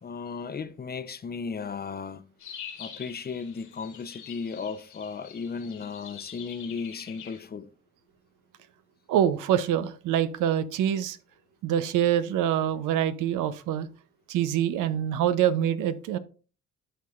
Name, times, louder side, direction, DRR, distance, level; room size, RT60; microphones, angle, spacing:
voice 1, 0.0-2.2 2.8-7.7, left 5 dB, 30° left, 0.6 m, -35 dB
sound 1, 2.4-7.4, left 9 dB, 90° left, 2.2 m, -45 dB
voice 2, 9.1-11.2 11.6-13.9 14.3-16.2, right 10 dB, 90° right, 0.7 m, -25 dB
12.0 x 4.7 x 2.4 m
cardioid pair, 90°, 30 cm